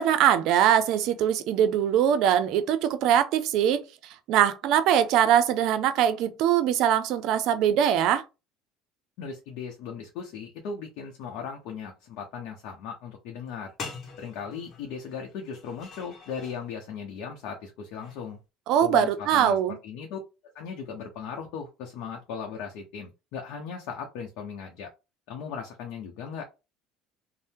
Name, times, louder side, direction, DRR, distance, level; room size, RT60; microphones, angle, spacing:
voice 1, 0.0-3.8 4.3-8.2 18.7-19.8, right 10 dB, 70° right, 0.5 m, -22 dB
voice 2, 9.2-13.7 14.2-18.4 18.8-19.6 19.8-20.2 20.5-24.9 25.3-26.5, left 6 dB, 75° left, 0.6 m, -37 dB
sound 1, 13.5-13.6 13.8-16.6 17.9-18.3, left 4 dB, 50° left, 0.9 m, -43 dB
2.7 x 2.0 x 3.4 m
supercardioid pair, 95°, 0 cm